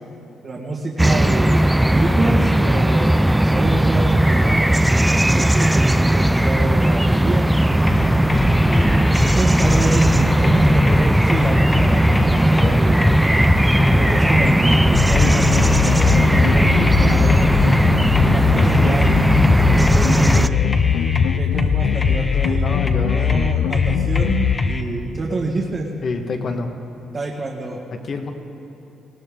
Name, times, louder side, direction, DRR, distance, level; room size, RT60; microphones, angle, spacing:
voice 1, 0.4-4.6 5.3-7.5 8.6-13.0 13.9-17.5 18.3-19.2 19.7-20.6 21.4-25.9 27.1-27.8, right 2 dB, 45° right, -4 dB, 1.9 m, -27 dB
sound 1, 1.0-20.5, right 1 dB, 5° right, 0.4 m, -17 dB
sound 2, 7.9-24.8, left 2 dB, 25° left, 1.1 m, -22 dB
sound 3, 14.9-24.5, left 11 dB, 85° left, 0.3 m, -21 dB
voice 2, 22.6-23.4 26.0-26.8 27.9-28.3, left 3 dB, 50° left, 4 dB, 1.6 m, -27 dB
20.0 x 17.5 x 3.8 m, 3.0 s
cardioid pair, 90°, 0 cm